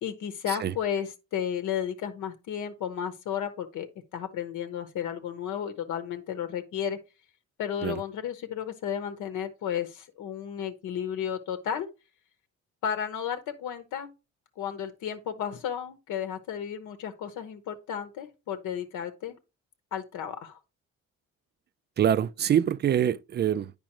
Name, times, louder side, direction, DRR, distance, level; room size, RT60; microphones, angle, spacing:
voice 1, 0.0-3.9 4.1-7.0 7.6-11.9 12.8-14.1 14.6-19.4 19.9-20.6, left 9 dB, 80° left, 0.9 m, -33 dB
voice 2, 22.0-23.7, right 9 dB, 35° right, 0.4 m, -25 dB
8.8 x 5.2 x 3.0 m
cardioid pair, 90°, 30 cm